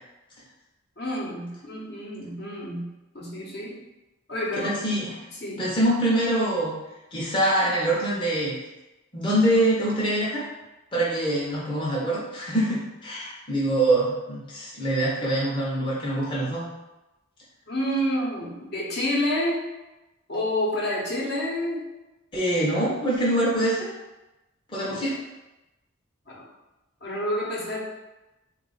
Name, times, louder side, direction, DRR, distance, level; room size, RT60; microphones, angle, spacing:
voice 1, 1.0-2.9 3.1-3.8 4.3-4.8 5.4-5.6 17.7-19.6 20.3-21.9 24.8-25.2 26.3-26.4 27.0-27.9, left 1 dB, 55° left, -4 dB, 0.9 m, -29 dB
voice 2, 4.6-5.1 5.6-6.7 7.1-8.6 9.1-10.4 10.9-16.6 22.3-23.9 24.7-25.2, right 1 dB, 25° left, -7 dB, 0.7 m, -24 dB
3.8 x 2.4 x 3.9 m, 1.0 s
head